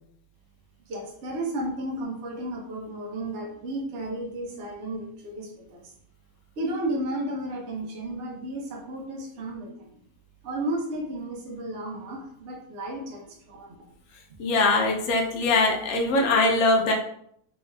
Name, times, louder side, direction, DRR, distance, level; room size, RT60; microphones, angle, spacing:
voice 1, 0.9-5.9 6.6-9.9 10.4-13.8, right 1 dB, 55° right, -1 dB, 0.8 m, -33 dB
voice 2, 14.4-16.9, left 2 dB, 70° left, 1 dB, 1.0 m, -22 dB
3.1 x 2.7 x 2.2 m, 0.68 s
omnidirectional pair, 1.7 m